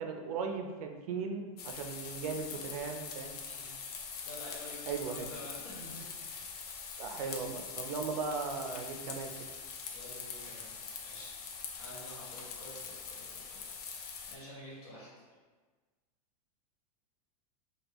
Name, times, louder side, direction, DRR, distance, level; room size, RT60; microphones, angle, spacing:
voice 1, 0.0-3.4 4.9-5.3 7.0-9.3, right 5 dB, 70° right, 4 dB, 0.4 m, -37 dB
sound 1, 1.6-14.4, left 5 dB, 85° left, 0.5 m, -43 dB
voice 2, 3.4-3.8 4.2-6.1 6.8-6.9 7.2-7.4 9.9-10.7 11.0-11.3 11.8-13.6 14.3-15.1, left 1 dB, 45° left, -6 dB, 1.3 m, -49 dB
3.5 x 2.2 x 2.9 m, 1.3 s
supercardioid pair, 165°, 19 cm